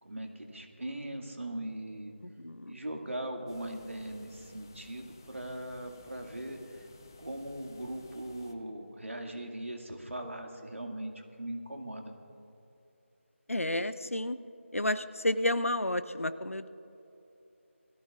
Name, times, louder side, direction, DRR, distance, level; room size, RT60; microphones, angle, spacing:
voice 1, 0.0-2.1 2.7-6.9 7.2-12.1, right 1 dB, 70° right, 2 dB, 2.1 m, -40 dB
voice 2, 2.2-2.7 13.5-14.4 14.7-16.7, left 1 dB, 85° left, 13 dB, 0.8 m, -31 dB
sound 1, 3.5-8.5, left 3 dB, 15° left, 0.5 m, -56 dB
21.5 x 14.5 x 2.5 m, 2.9 s
figure-of-eight pair, 165°, 7 cm